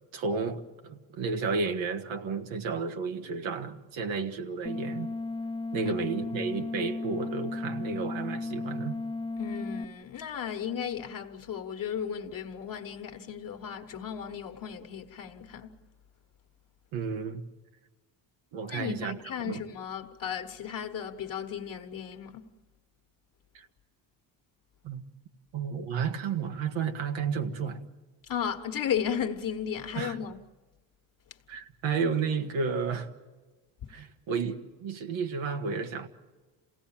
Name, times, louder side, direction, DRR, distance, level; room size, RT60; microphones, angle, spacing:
voice 1, 0.1-5.1 5.7-9.0 16.9-17.4 18.5-19.2 19.4-19.6 23.6-23.7 24.8-25.0 25.5-27.8 30.0-30.2 31.5-33.1 33.9-36.1, right 5 dB, 85° right, 1.8 m, -32 dB
sound 1, 4.7-9.8, left 3 dB, 10° left, 0.7 m, -35 dB
voice 2, 9.4-15.8 18.7-22.5 28.3-30.4 33.8-33.9, left 8 dB, 45° left, 1.3 m, -35 dB
28.0 x 17.0 x 7.3 m
cardioid pair, 140°, 45 cm